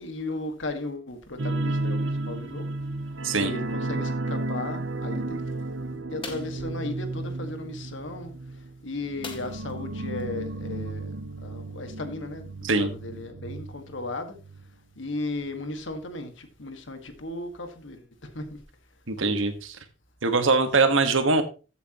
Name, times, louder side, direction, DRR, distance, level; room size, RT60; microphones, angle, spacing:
voice 1, 0.0-2.7 3.4-5.4 5.9-8.3 8.8-11.2 11.4-14.4 15.0-18.0 18.3-18.6 19.2-19.4, left 2 dB, 75° left, 1.8 m, -36 dB
sound 1, 1.4-14.6 14.9-15.1 15.5-15.6, right 2 dB, 70° right, 0.9 m, -33 dB
sound 2, 6.2-6.6 9.2-9.8 10.2-10.3 10.7-10.8, left 4 dB, 25° left, 1.8 m, -40 dB
voice 2, 19.1-19.8 20.2-21.4, right 3 dB, 90° right, 1.6 m, -22 dB
14.5 x 8.1 x 3.0 m
head